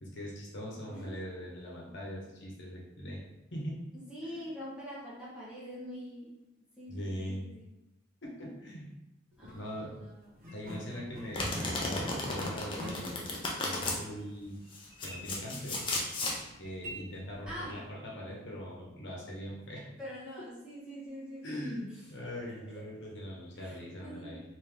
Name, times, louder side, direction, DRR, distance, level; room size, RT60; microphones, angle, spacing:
voice 1, 0.0-3.2 3.5-3.8 4.2-4.5 6.9-7.5 8.2-8.9 9.5-10.0 10.5-14.6 15.0-15.9 16.6-19.9 21.4-24.4, equal, 70° left, -3 dB, 1.0 m, -41 dB
voice 2, 3.9-6.3 6.8-7.6 9.4-9.8 17.5-17.7 20.0-21.7 22.7-22.8 23.6-24.4, equal, 5° right, -9 dB, 1.1 m, -44 dB
sound 1, 9.3-9.6 10.4-17.9, equal, 45° right, 1.0 m, -46 dB
Domestic sounds home sounds, 11.3-14.0 14.7-16.4, left 2 dB, 25° left, 0.5 m, -34 dB
3.3 x 2.7 x 3.4 m, 0.93 s
head